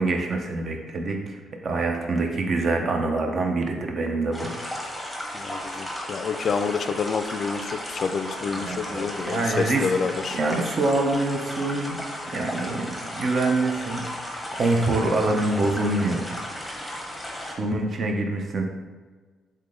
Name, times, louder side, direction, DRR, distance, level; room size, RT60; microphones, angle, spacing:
voice 1, 0.0-4.5 8.5-9.9 10.3-12.0 12.3-14.1 14.5-16.3 16.5-17.0 17.6-18.6, right 2 dB, 50° right, 3 dB, 0.6 m, -25 dB
sound 1, 4.3-17.5, equal, ahead, 1.0 m, -35 dB
voice 2, 5.3-10.4, left 5 dB, 50° left, 9 dB, 0.3 m, -28 dB
3.7 x 3.2 x 3.8 m, 1.4 s
cardioid pair, 90°, 0 cm